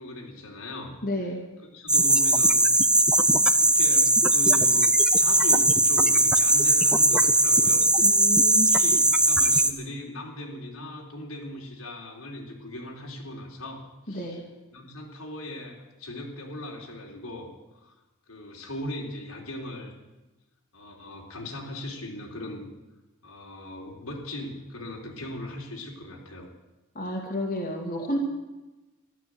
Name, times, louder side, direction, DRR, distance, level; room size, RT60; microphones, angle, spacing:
voice 1, 0.0-1.3 1.7-2.6 3.6-8.2 8.5-14.4 14.7-17.5 17.8-18.0 18.3-19.9 20.7-22.6 23.2-26.5, left 1 dB, 80° left, -1 dB, 3.9 m, -39 dB
voice 2, 1.0-1.4 8.0-8.7 14.1-14.4 26.9-28.2, left 1 dB, 40° left, 0 dB, 2.5 m, -30 dB
sound 1, 1.9-9.7, right 2 dB, 5° right, 0.6 m, -20 dB
14.0 x 12.5 x 8.0 m, 1.1 s
head